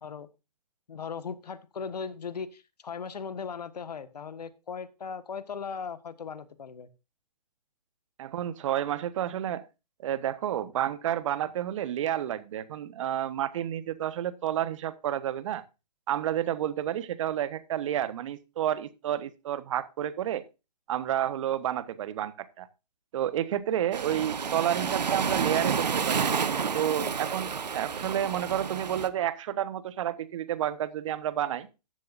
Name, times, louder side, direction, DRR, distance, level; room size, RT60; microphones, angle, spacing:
voice 1, 0.9-6.9, left 6 dB, 70° left, 1.7 m, -38 dB
voice 2, 8.2-9.6 10.0-15.6 16.1-20.4 20.9-22.7 23.1-26.3 26.7-31.7, right 11 dB, 50° right, 1.3 m, -30 dB
Waves surf, 23.9-29.1, right 6 dB, 80° right, 1.3 m, -30 dB
14.0 x 11.0 x 2.6 m
hypercardioid pair, 135°, 21 cm